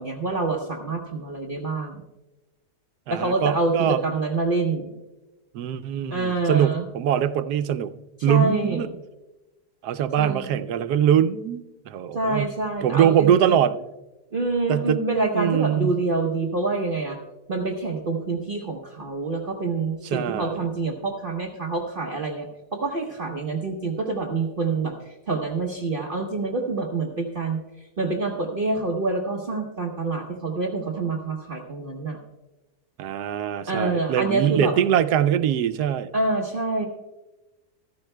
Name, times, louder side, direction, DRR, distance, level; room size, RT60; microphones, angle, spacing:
voice 1, 0.0-2.0 3.1-4.9 6.1-6.9 8.3-8.9 10.2-10.6 12.1-13.6 14.3-17.2 17.5-22.5 22.7-27.6 28.0-32.2 33.7-34.7 36.1-36.9, right 3 dB, 40° right, 1 dB, 1.0 m, -26 dB
voice 2, 3.1-4.0 5.5-7.9 8.2-8.9 9.8-12.5 12.8-13.7 14.7-15.0 15.3-16.0 20.1-20.6 33.0-36.1, right 9 dB, 90° right, 11 dB, 1.2 m, -22 dB
15.0 x 14.0 x 2.2 m, 1.1 s
omnidirectional pair, 1.7 m